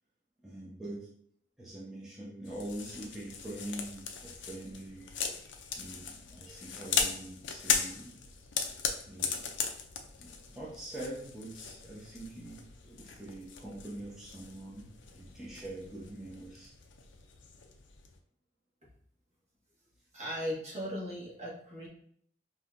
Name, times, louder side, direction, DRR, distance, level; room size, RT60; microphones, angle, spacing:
voice 1, 0.4-1.0 1.6-5.1 5.8-8.1 9.1-9.5 10.2-16.7, right 1 dB, 5° right, -10 dB, 0.9 m, -44 dB
sound 1, 2.5-18.2, left 6 dB, 80° left, 0.5 m, -38 dB
voice 2, 20.1-21.9, equal, 35° right, -7 dB, 1.8 m, -37 dB
5.6 x 2.9 x 2.6 m, 0.64 s
head